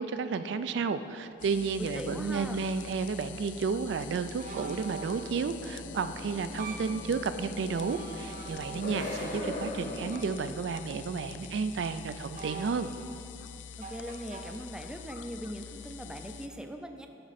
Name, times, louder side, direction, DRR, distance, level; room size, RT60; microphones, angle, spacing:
voice 1, 0.0-12.9, right 5 dB, 70° right, 11 dB, 0.3 m, -32 dB
sound 1, 1.4-16.5, left 7 dB, 80° left, 0.4 m, -46 dB
sound 2, 1.6-1.7 2.5-2.7 4.4-5.4 6.4-7.0 7.7-9.2 10.1-10.4 12.3-13.1 13.8-14.4, right 3 dB, 45° right, 0.8 m, -44 dB
voice 2, 1.8-2.7 13.9-17.1, equal, 5° right, 5 dB, 0.4 m, -40 dB
sound 3, 5.2-10.3, left 1 dB, 45° left, 1.3 m, -40 dB
12.5 x 5.2 x 4.1 m, 3.0 s
head